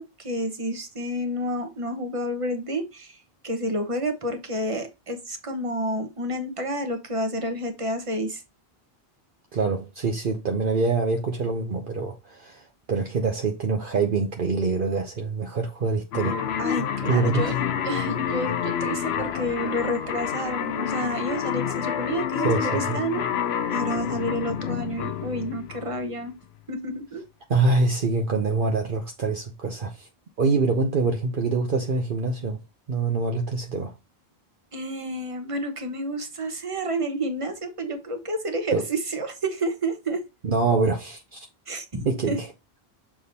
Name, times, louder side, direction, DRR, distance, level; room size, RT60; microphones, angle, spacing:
voice 1, 0.0-3.2 3.4-8.4 16.6-17.5 17.8-23.2 23.7-26.3 26.7-27.2 34.7-40.2 41.7-42.4, equal, 35° right, 1.2 m, -30 dB
voice 2, 9.5-16.4 17.0-17.5 22.4-23.0 27.5-30.1 30.4-32.6 32.9-33.9 38.7-38.8 40.4-41.5 42.0-42.5, right 4 dB, 60° right, 0.9 m, -25 dB
sound 1, 16.1-26.2, left 8 dB, 90° left, 0.9 m, -28 dB
6.8 x 3.7 x 4.0 m
omnidirectional pair, 1.0 m